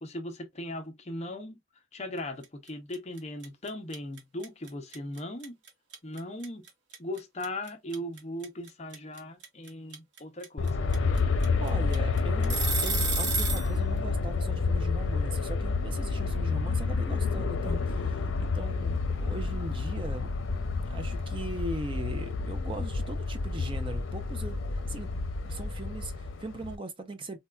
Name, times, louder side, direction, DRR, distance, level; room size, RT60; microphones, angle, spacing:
voice 1, 0.0-1.6 1.9-5.6 6.0-6.7 7.0-10.9, left 1 dB, 35° left, 0.6 m, -38 dB
sound 1, 2.4-2.7 2.9-13.7, right 5 dB, 65° right, 1.0 m, -32 dB
Aircraft, 10.6-26.8, left 4 dB, 90° left, 0.6 m, -29 dB
voice 2, 11.2-20.3 20.9-25.1 25.4-27.4, right 2 dB, 25° right, 0.5 m, -40 dB
4.3 x 2.2 x 2.3 m
head